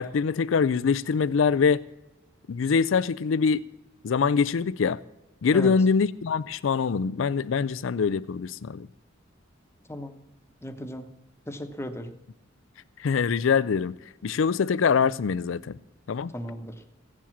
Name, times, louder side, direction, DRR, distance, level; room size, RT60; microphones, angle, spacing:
voice 1, 0.0-1.8 2.5-3.6 4.0-5.0 5.4-8.9 13.0-14.0 14.2-15.6 16.1-16.3, left 5 dB, 70° left, 0.4 m, -24 dB
voice 2, 10.6-11.1 11.5-12.1 16.3-16.8, equal, 15° left, 1.0 m, -35 dB
16.0 x 7.5 x 7.2 m
head